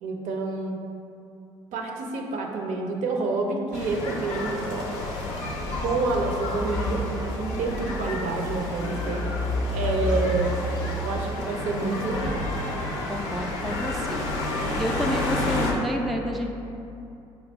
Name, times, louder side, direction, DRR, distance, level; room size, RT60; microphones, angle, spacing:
voice 1, 0.0-0.8 1.7-4.9 5.8-9.3 9.7-10.5 11.0-12.4, right 3 dB, 60° right, 1 dB, 0.5 m, -28 dB
sound 1, 3.7-15.7, left 1 dB, 80° left, 0.5 m, -29 dB
voice 2, 13.1-14.3 14.8-16.5, equal, ahead, 2 dB, 0.3 m, -29 dB
4.3 x 2.3 x 3.2 m, 2.7 s
hypercardioid pair, 50°, 14 cm